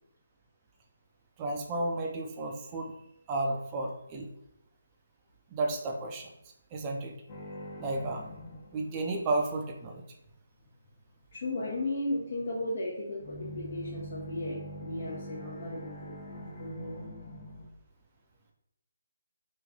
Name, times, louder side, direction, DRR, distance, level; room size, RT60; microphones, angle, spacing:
voice 1, 1.4-2.9 3.3-4.3 5.5-6.3 6.7-7.1 7.8-8.3 8.7-10.1, right 2 dB, 25° right, 1 dB, 0.5 m, -32 dB
sound 1, 7.3-9.5 13.1-17.7, equal, 30° left, 0.8 m, -44 dB
voice 2, 11.3-17.1, left 1 dB, 55° left, -7 dB, 1.0 m, -35 dB
3.1 x 2.5 x 3.7 m, 0.82 s
figure-of-eight pair, 150°, 0 cm